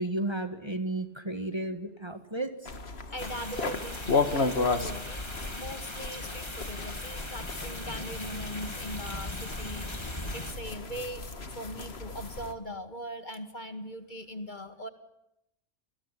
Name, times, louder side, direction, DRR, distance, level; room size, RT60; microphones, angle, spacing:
voice 1, 0.0-2.5, right 2 dB, 20° right, 7 dB, 1.8 m, -33 dB
sound 1, 2.7-12.5, left 4 dB, 60° left, 2.1 m, -34 dB
voice 2, 3.1-5.2 5.6-11.2 11.5-14.9, equal, 40° left, 8 dB, 2.2 m, -40 dB
sound 2, 3.2-10.5, left 1 dB, 20° left, 2.9 m, -40 dB
28.0 x 20.5 x 10.0 m, 0.85 s
omnidirectional pair, 1.2 m